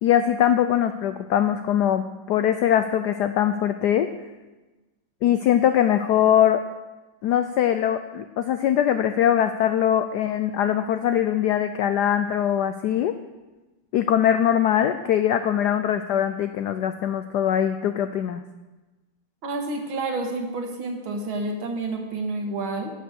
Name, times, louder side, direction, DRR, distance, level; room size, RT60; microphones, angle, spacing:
voice 1, 0.0-4.1 5.2-6.6 7.2-13.1 13.9-18.4, left 10 dB, 80° left, 9 dB, 0.9 m, -22 dB
voice 2, 19.4-22.9, right 2 dB, 70° right, 3 dB, 2.2 m, -29 dB
12.0 x 7.5 x 6.4 m, 1.1 s
omnidirectional pair, 2.3 m